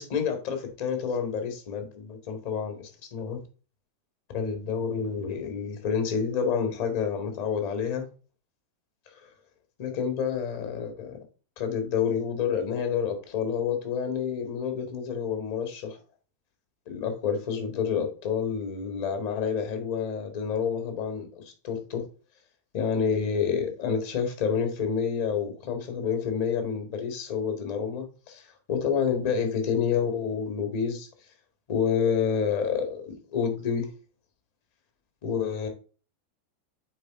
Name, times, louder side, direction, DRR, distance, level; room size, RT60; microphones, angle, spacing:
voice 1, 0.0-3.4 4.3-8.0 9.1-9.3 9.8-11.2 11.6-16.0 16.9-22.0 22.7-31.1 31.7-33.9 35.2-35.7, left 6 dB, 50° left, 5 dB, 1.8 m, -29 dB
8.6 x 3.8 x 3.7 m, 0.36 s
figure-of-eight pair, 90°, 0 cm